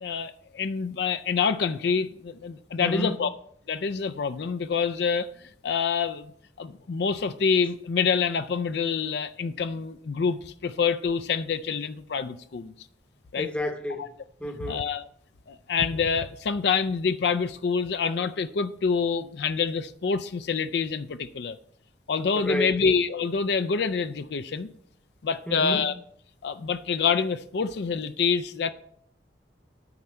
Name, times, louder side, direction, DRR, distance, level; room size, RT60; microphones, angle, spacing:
voice 1, 0.0-3.3 3.7-5.3 5.6-6.3 6.6-12.7 13.3-13.5 14.7-15.0 15.5-21.6 22.1-24.7 25.2-25.9 26.4-28.7, left 5 dB, 60° left, 0.4 m, -26 dB
voice 2, 2.8-3.2 13.4-14.1 14.4-14.9 22.3-22.8 25.5-25.9, left 1 dB, 5° left, 0.8 m, -31 dB
9.6 x 4.4 x 6.9 m
head